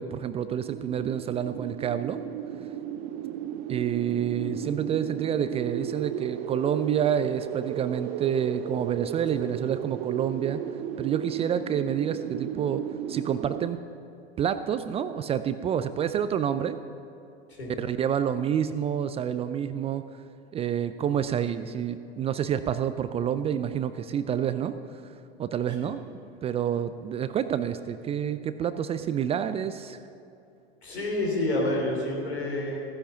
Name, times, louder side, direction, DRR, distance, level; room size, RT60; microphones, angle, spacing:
voice 1, 0.0-2.2 3.7-10.6 11.0-13.8 14.4-16.8 17.8-20.0 20.5-24.8 25.4-26.1 26.4-30.0, right 9 dB, 20° right, 12 dB, 0.4 m, -28 dB
sound 1, 0.6-13.7, right 10 dB, 40° right, 0.7 m, -35 dB
voice 2, 30.8-32.8, left 1 dB, 85° left, -2 dB, 3.9 m, -28 dB
15.0 x 10.0 x 5.8 m, 2.6 s
hypercardioid pair, 90°, 31 cm